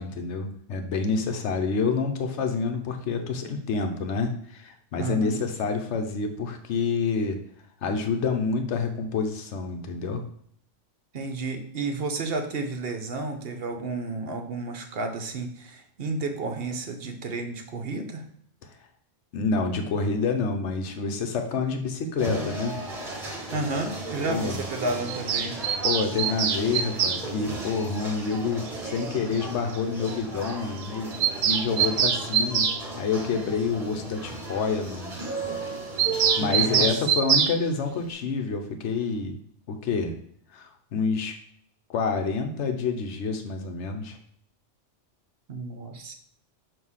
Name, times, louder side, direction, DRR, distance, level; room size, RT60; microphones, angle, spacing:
voice 1, 0.0-7.4 7.8-10.2 19.3-22.8 24.3-24.6 25.8-35.1 36.4-39.4 39.7-40.1 40.5-41.3 41.9-44.2, left 4 dB, 70° left, 5 dB, 1.1 m, -28 dB
voice 2, 5.0-5.4 11.1-18.3 23.5-25.6 36.4-37.1 45.5-46.1, right 3 dB, 55° right, 5 dB, 0.9 m, -32 dB
sound 1, 22.2-36.9, right 2 dB, 30° right, 1.4 m, -36 dB
Bird vocalization bird call bird song, 25.1-27.2 28.7-28.8 29.0-29.1 29.3-29.4 29.7-29.8 30.1-30.2 30.4-30.6 30.8-32.8 36.0-37.6, right 7 dB, 85° right, 1.0 m, -24 dB
6.3 x 2.8 x 5.5 m, 0.64 s
omnidirectional pair, 1.3 m